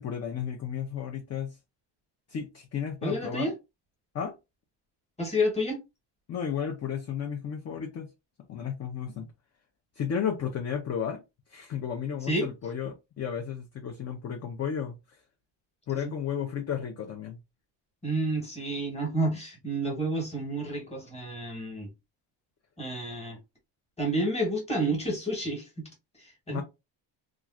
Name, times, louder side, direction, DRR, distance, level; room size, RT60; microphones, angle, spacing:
voice 1, 0.0-1.6 2.3-3.5 4.1-4.3 6.3-8.1 8.5-9.3 10.0-11.2 11.5-15.0 15.9-17.4 26.5-26.6, left 8 dB, 35° left, 0.5 m, -33 dB
voice 2, 3.0-3.5 5.2-5.8 12.2-12.5 16.0-16.1 18.0-21.9 22.8-23.4 24.0-25.9 26.2-26.6, right 1 dB, 15° left, 1.1 m, -30 dB
3.0 x 2.3 x 2.4 m
cardioid pair, 140°, 45 cm